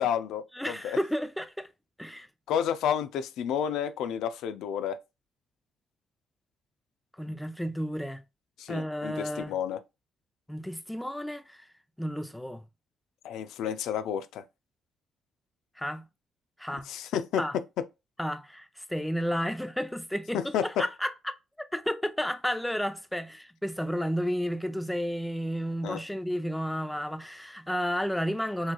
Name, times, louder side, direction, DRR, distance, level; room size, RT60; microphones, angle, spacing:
voice 1, 0.0-1.0 2.5-5.0 8.6-9.8 13.2-14.4 16.9-17.4 20.3-20.8 25.8-26.0, left 8 dB, 85° left, 0.4 m, -30 dB
voice 2, 0.5-1.7 2.0-2.3 7.2-8.2 8.7-9.6 10.5-11.7 12.0-12.7 15.8-16.1 16.6-16.9 17.4-17.6 18.2-21.1 21.6-28.7, equal, 5° left, 0.6 m, -32 dB
6.4 x 2.9 x 2.3 m
cardioid pair, 90°, 0 cm